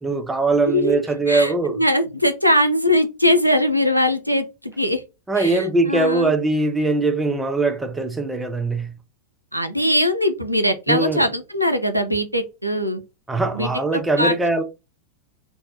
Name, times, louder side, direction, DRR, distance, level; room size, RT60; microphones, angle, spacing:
voice 1, 0.0-1.8 5.3-8.9 10.9-11.3 13.3-14.6, right 3 dB, 10° right, 0.5 m, -21 dB
voice 2, 0.6-1.0 1.3-5.0 5.4-6.3 9.5-13.0 13.5-14.3, left 1 dB, 90° right, 0.5 m, -21 dB
2.6 x 2.1 x 3.9 m
figure-of-eight pair, 90°, 0 cm